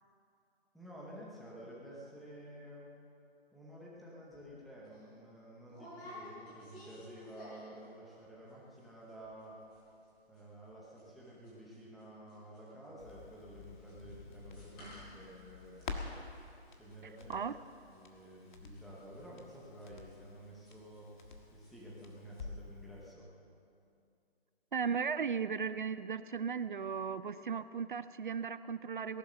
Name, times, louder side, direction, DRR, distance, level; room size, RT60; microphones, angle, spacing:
voice 1, 0.7-2.9 3.5-9.6 10.3-16.2 16.7-17.4 17.9-21.2 21.5-23.3, equal, ahead, -6 dB, 0.8 m, -51 dB
sound 1, 4.3-4.5 4.9-5.0 5.7-7.8 8.1-8.5 8.8-8.9 9.1-9.4 9.7-12.0 12.3-21.3 21.6-22.0 22.3-22.4, left 1 dB, 20° left, 5.1 m, -55 dB
Crackle, 13.0-22.8 23.1-23.2, left 4 dB, 45° left, 1.6 m, -49 dB
voice 2, 24.7-29.2, right 6 dB, 50° right, 14 dB, 0.5 m, -36 dB
18.0 x 11.5 x 6.6 m, 2.5 s
hypercardioid pair, 165°, 33 cm